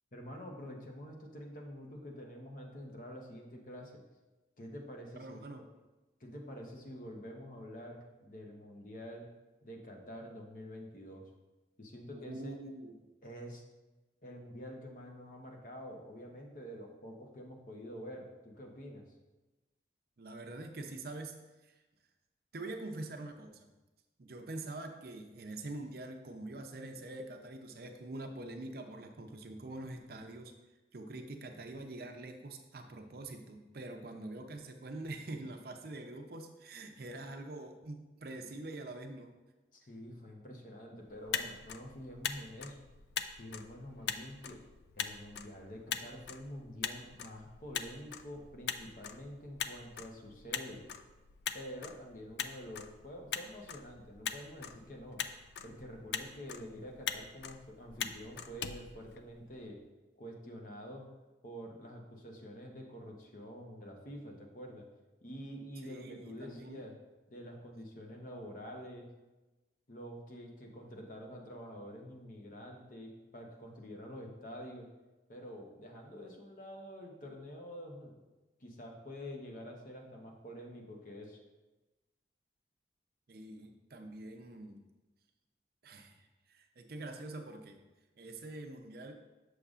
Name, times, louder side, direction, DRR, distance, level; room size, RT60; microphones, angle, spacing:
voice 1, 0.1-4.0 4.6-5.7 6.2-9.3 9.6-11.3 11.8-12.6 13.2-13.6 14.2-19.0 39.7-42.8 43.4-44.6 44.9-50.8 51.5-55.2 55.6-59.8 60.2-61.1 61.4-64.9 65.2-66.9 67.3-69.1 69.9-74.9 75.3-78.2 78.6-81.4, equal, 45° left, 1 dB, 0.9 m, -47 dB
voice 2, 5.2-5.6 12.1-12.9 20.2-21.4 21.6-21.7 22.5-23.7 24.2-30.5 30.9-39.3 65.8-66.8 83.3-84.8 85.8-87.8 88.2-89.1, right 2 dB, 55° right, 5 dB, 0.5 m, -45 dB
Motor vehicle (road), 41.1-59.7, left 8 dB, 65° left, 0.3 m, -42 dB
6.7 x 6.3 x 2.4 m, 1.1 s
head